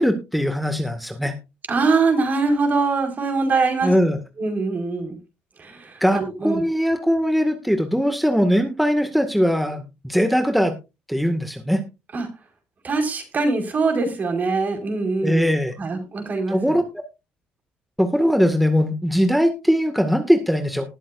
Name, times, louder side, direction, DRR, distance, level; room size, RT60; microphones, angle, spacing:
voice 1, 0.0-1.3 3.8-4.2 6.0-10.7 11.1-11.8 15.2-15.7 16.5-16.8 18.0-20.9, equal, ahead, 7 dB, 2.0 m, -20 dB
voice 2, 1.7-3.9 4.4-5.2 5.6-6.6 12.1-12.3 12.8-16.8, right 3 dB, 45° right, 5 dB, 4.8 m, -23 dB
19.5 x 7.6 x 2.6 m, 0.27 s
supercardioid pair, 65°, 4 cm